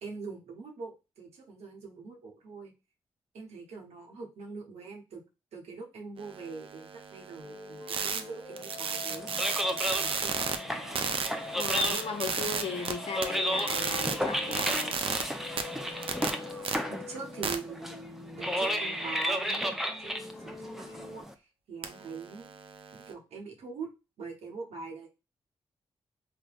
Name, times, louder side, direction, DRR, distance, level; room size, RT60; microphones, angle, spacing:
voice 1, 0.0-2.7 3.3-5.2 5.5-11.2 16.9-17.9 18.4-19.7 20.0-22.5 22.9-23.9 24.2-25.1, right 4 dB, 75° right, 1 dB, 0.9 m, -43 dB
sound 1, 6.2-10.6 11.0-12.9 13.2-15.2 15.6-16.7 17.4-17.6 21.8-23.1, right 5 dB, 55° right, 0.5 m, -34 dB
sound 2, 7.4-19.4 19.9-21.2, left 3 dB, 40° left, 1.2 m, -45 dB
sound 3, 9.1-21.3, equal, 5° right, 0.5 m, -34 dB
voice 2, 11.5-15.0, left 5 dB, 60° left, 5 dB, 0.7 m, -36 dB
3.4 x 2.1 x 2.5 m, 0.27 s
supercardioid pair, 40°, 11 cm